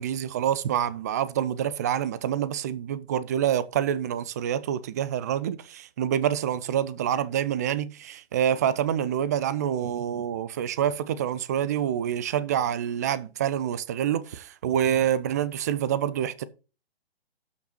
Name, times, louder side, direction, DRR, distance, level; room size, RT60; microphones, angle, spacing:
voice 1, 0.0-16.4, right 10 dB, 15° right, 0.4 m, -27 dB
12.5 x 5.6 x 4.4 m
figure-of-eight pair, 125°, 31 cm